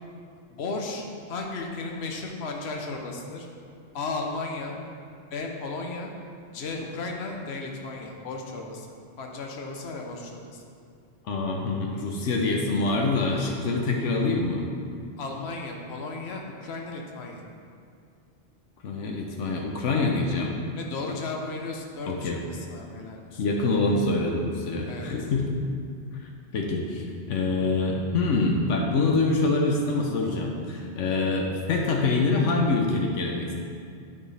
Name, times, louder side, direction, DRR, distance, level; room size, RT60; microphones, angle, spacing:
voice 1, 0.3-1.0 1.3-3.5 3.9-4.8 5.3-6.1 6.5-8.9 9.2-10.6 15.2-17.4 20.8-23.4 24.9-25.1, left 3 dB, 65° left, 1 dB, 1.1 m, -35 dB
voice 2, 11.3-14.7 18.8-20.6 22.0-22.4 23.4-25.5 26.2-33.5, left 3 dB, 85° left, 1 dB, 1.1 m, -25 dB
11.5 x 4.5 x 3.3 m, 2.4 s
omnidirectional pair, 1.2 m